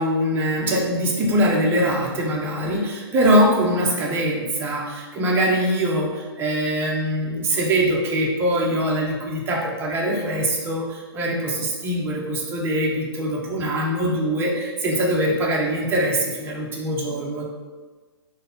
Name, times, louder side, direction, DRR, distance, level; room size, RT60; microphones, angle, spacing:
voice 1, 0.0-17.4, equal, 15° right, -2 dB, 0.6 m, -22 dB
3.8 x 2.1 x 3.8 m, 1.4 s
hypercardioid pair, 140°, 14 cm